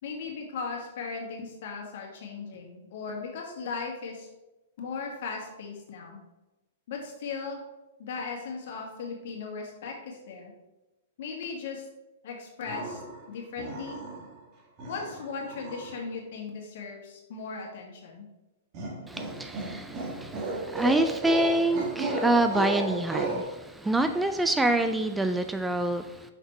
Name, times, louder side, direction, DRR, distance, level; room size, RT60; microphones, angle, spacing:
voice 1, 0.0-4.3 4.8-6.2 6.9-7.6 8.0-10.5 11.2-11.8 12.2-13.0 13.3-14.0 14.9-18.3 24.5-24.6, left 4 dB, 65° left, 1 dB, 1.7 m, -37 dB
sound 1, 12.7-13.2 13.6-14.4 14.8-16.0 18.7-23.4, right 2 dB, 40° right, 1.6 m, -33 dB
voice 2, 19.1-26.3, right 1 dB, 5° right, 8 dB, 0.3 m, -26 dB
5.8 x 4.2 x 4.6 m, 1.0 s
hypercardioid pair, 135°, 0 cm